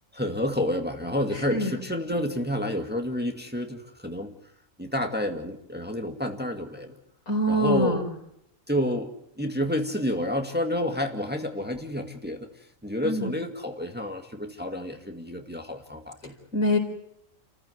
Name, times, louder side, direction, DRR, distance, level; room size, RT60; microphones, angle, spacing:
voice 1, 0.1-4.3 4.8-7.0 7.5-8.0 8.7-9.1 9.4-16.4, left 1 dB, 5° right, 4 dB, 2.0 m, -29 dB
voice 2, 7.3-8.0 13.0-13.3 16.5-16.8, equal, 75° left, 3 dB, 4.6 m, -24 dB
29.0 x 15.0 x 8.0 m, 0.75 s
omnidirectional pair, 1.4 m